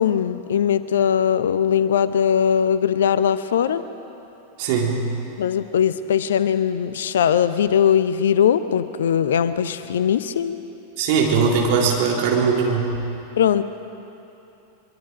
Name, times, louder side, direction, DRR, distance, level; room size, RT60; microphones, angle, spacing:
voice 1, 0.0-3.8 5.4-10.6 13.4-13.6, left 8 dB, 60° left, 13 dB, 0.7 m, -20 dB
voice 2, 4.6-5.0 11.0-12.9, right 5 dB, 45° right, -1 dB, 3.7 m, -20 dB
23.5 x 23.0 x 5.0 m, 2.9 s
figure-of-eight pair, 90°, 0 cm